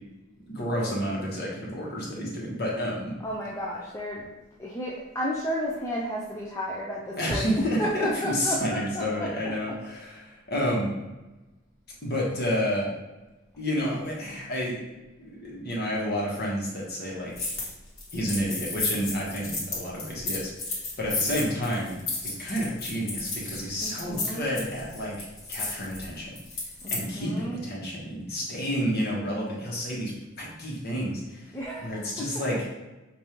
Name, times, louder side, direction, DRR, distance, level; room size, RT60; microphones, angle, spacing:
voice 1, 0.5-3.1 7.2-11.0 12.0-12.9 13.6-17.5 18.1-20.5 21.0-26.3 26.9-31.5 31.8-32.7, equal, 50° left, -4 dB, 1.1 m, -30 dB
voice 2, 3.2-4.3 4.6-9.3 23.8-24.5 26.8-27.6 31.5-32.3, equal, 15° left, -4 dB, 0.4 m, -32 dB
sound 1, 17.3-17.7 18.0-27.0, left 3 dB, 80° left, 1.2 m, -33 dB
4.9 x 2.6 x 2.9 m, 1.1 s
head